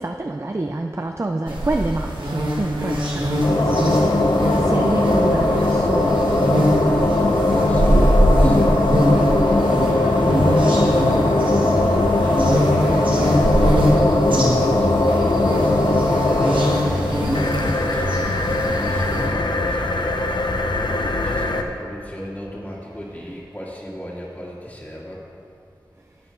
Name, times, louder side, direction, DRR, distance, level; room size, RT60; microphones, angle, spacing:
voice 1, 0.0-6.3 7.5-7.8 22.9-23.4, right 2 dB, 35° right, 4 dB, 0.5 m, -28 dB
sound 1, 1.5-19.3, equal, 80° right, 1.5 m, -22 dB
sound 2, 3.2-21.6, left 2 dB, 65° left, 0.7 m, -20 dB
voice 2, 7.2-9.9 10.4-11.4 12.2-20.9 21.2-25.2, equal, 20° left, -6 dB, 1.8 m, -35 dB
11.5 x 8.0 x 3.9 m, 2.5 s
wide cardioid pair, 45°, 8 cm